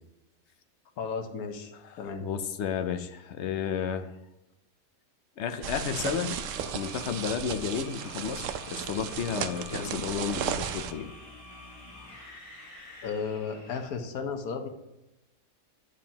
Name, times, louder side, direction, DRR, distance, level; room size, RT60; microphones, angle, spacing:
voice 1, 1.0-2.3 9.7-9.9 13.0-14.7, left 5 dB, 90° left, 6 dB, 1.4 m, -34 dB
voice 2, 1.8-4.1 5.4-6.3 6.7-11.1, left 7 dB, 60° left, 9 dB, 0.8 m, -32 dB
sound 1, 5.5-14.0, left 1 dB, 25° left, 1.6 m, -47 dB
sound 2, 5.6-10.9, right 8 dB, 70° right, 0.9 m, -35 dB
10.5 x 7.1 x 2.9 m, 0.93 s
omnidirectional pair, 1.5 m